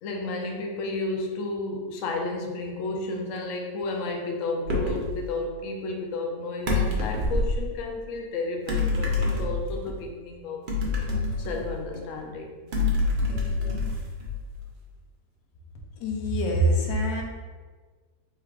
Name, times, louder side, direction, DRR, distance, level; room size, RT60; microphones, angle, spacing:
voice 1, 0.0-10.6 11.4-12.6, left 2 dB, 70° left, 2 dB, 0.8 m, -32 dB
sound 1, 4.7-5.1 6.7-7.6 8.7-9.9 10.7-12.0 12.7-14.6, left 3 dB, 70° right, 0.4 m, -26 dB
voice 2, 16.0-17.2, right 1 dB, 90° left, 0 dB, 1.4 m, -24 dB
3.5 x 2.4 x 4.5 m, 1.4 s
omnidirectional pair, 1.9 m